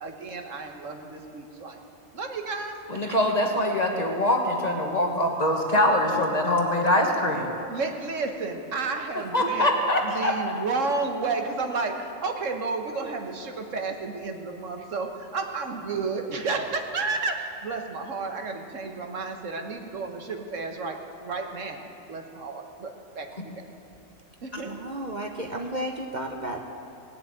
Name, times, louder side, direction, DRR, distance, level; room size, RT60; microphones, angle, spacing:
voice 1, 0.0-1.8 2.1-2.8 3.0-3.2 7.7-9.7 10.0-23.5 24.4-24.7, right 4 dB, 75° right, 4 dB, 1.6 m, -32 dB
voice 2, 2.9-7.5 9.3-10.3, left 1 dB, 35° left, 1 dB, 1.4 m, -23 dB
voice 3, 24.5-26.6, right 1 dB, 40° right, 2 dB, 1.0 m, -33 dB
18.5 x 7.3 x 8.7 m, 2.7 s
omnidirectional pair, 1.3 m